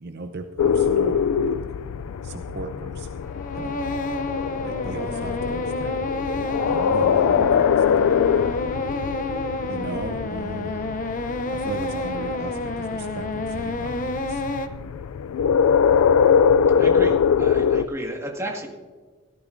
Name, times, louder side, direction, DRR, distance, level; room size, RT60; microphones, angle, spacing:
voice 1, 0.0-1.5 2.2-3.2 3.5-3.9 4.6-6.1 6.7-8.6 9.7-10.9 11.5-14.4, right 3 dB, 50° right, 6 dB, 0.7 m, -36 dB
sound 1, 0.6-17.9, left 7 dB, 80° left, 0.4 m, -23 dB
sound 2, 3.2-14.7, left 2 dB, 35° left, 0.7 m, -30 dB
voice 2, 16.8-18.7, equal, 15° right, 0 dB, 1.8 m, -32 dB
17.0 x 14.0 x 2.6 m, 1.5 s
head